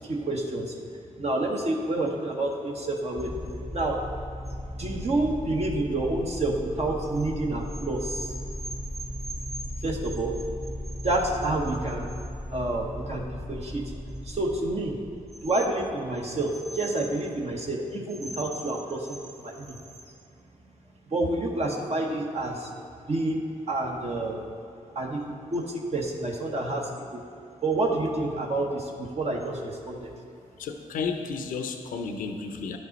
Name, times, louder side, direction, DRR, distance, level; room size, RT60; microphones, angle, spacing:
voice 1, 0.0-0.8 1.2-3.3 3.7-4.0 4.8-8.3 9.8-10.4 11.0-12.1 12.5-13.9 14.2-15.0 15.4-19.8 21.1-22.7 23.1-24.4 24.9-27.2 27.6-30.1, right 2 dB, 50° right, 0 dB, 1.0 m, -29 dB
sound 1, 3.2-16.2, equal, 5° right, 0.6 m, -37 dB
voice 2, 30.6-32.8, left 5 dB, 90° left, 6 dB, 0.6 m, -32 dB
10.5 x 5.3 x 4.0 m, 2.6 s
cardioid pair, 55°, 14 cm